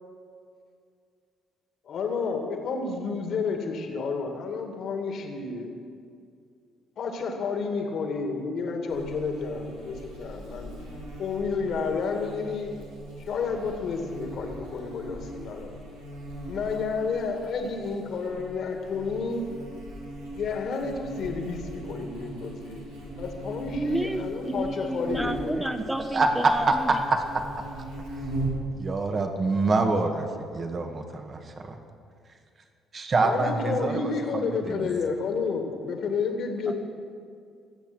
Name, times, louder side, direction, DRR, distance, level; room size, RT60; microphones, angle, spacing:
voice 1, 1.8-5.7 7.0-10.7 11.2-12.7 13.2-15.7 16.5-19.5 20.3-22.8 23.2-25.8 33.2-36.7, left 4 dB, 55° left, 4 dB, 2.3 m, -30 dB
Buzz, 8.9-28.7, right 1 dB, 80° right, 3.1 m, -39 dB
voice 2, 23.7-27.0 36.7-36.8, right 1 dB, 10° right, 6 dB, 1.0 m, -31 dB
voice 3, 26.1-27.2 28.7-31.7 32.9-34.8, right 3 dB, 40° right, 5 dB, 1.9 m, -26 dB
24.0 x 8.8 x 6.3 m, 2.3 s
figure-of-eight pair, 45°, 0 cm